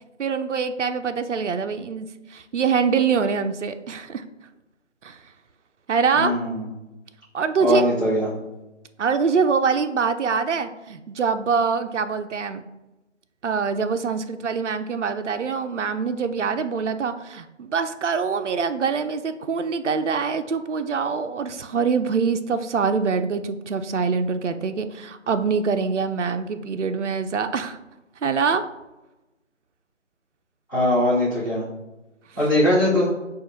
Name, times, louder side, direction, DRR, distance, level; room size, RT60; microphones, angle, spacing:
voice 1, 0.2-4.2 5.0-5.2 5.9-6.3 7.3-7.9 9.0-12.6 13.4-27.8 28.2-28.6, right 5 dB, 70° right, 8 dB, 0.5 m, -24 dB
voice 2, 6.1-6.7 7.6-8.3 30.7-31.6 32.4-33.1, left 1 dB, 15° left, -12 dB, 1.3 m, -21 dB
6.4 x 2.5 x 3.0 m, 1.0 s
figure-of-eight pair, 165°, 37 cm